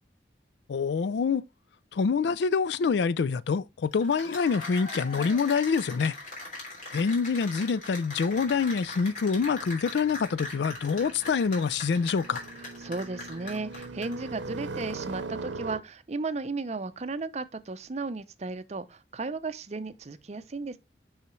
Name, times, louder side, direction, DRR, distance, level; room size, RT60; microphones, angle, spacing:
voice 1, 0.7-1.4 1.9-6.2 6.9-12.4, left 5 dB, 70° left, 0.4 m, -26 dB
Cheering / Applause, 3.9-14.3, left 2 dB, 45° left, 3.2 m, -40 dB
sound 1, 8.3-15.8, right 3 dB, 80° right, 0.8 m, -41 dB
voice 2, 12.8-20.8, right 3 dB, 35° right, 0.5 m, -35 dB
6.7 x 5.6 x 3.1 m
head